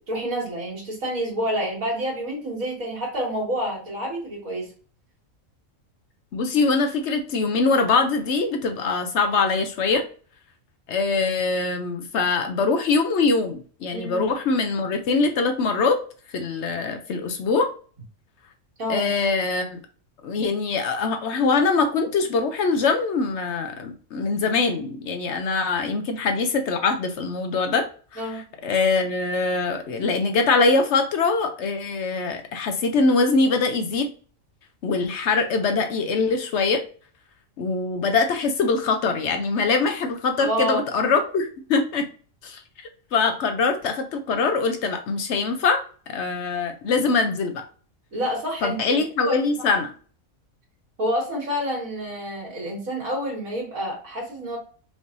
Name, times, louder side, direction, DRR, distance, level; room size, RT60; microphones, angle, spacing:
voice 1, 0.1-4.7 13.9-14.3 18.8-19.1 28.2-28.5 40.4-40.8 48.1-48.8 49.2-49.4 51.0-54.6, equal, 80° right, -2 dB, 2.3 m, -28 dB
voice 2, 6.3-10.0 10.9-16.0 16.3-17.7 18.9-19.8 20.2-27.9 28.1-28.2 28.6-34.1 34.8-36.8 37.6-42.1 42.4-42.6 43.1-47.6 48.6-49.9, left 4 dB, 65° left, 6 dB, 0.9 m, -23 dB
5.2 x 3.1 x 2.6 m, 0.41 s
omnidirectional pair, 1.4 m